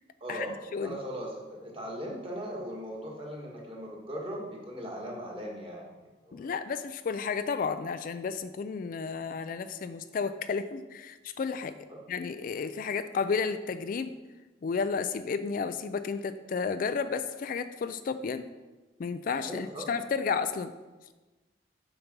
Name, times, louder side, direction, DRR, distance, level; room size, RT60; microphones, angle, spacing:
voice 1, 0.2-5.9 6.2-6.5 11.9-12.0 19.4-19.9, equal, 30° right, -2 dB, 1.7 m, -39 dB
voice 2, 6.3-11.7 12.1-14.1 14.6-18.5 19.0-20.7, left 5 dB, 50° left, 11 dB, 0.3 m, -32 dB
6.9 x 5.8 x 5.2 m, 1.2 s
head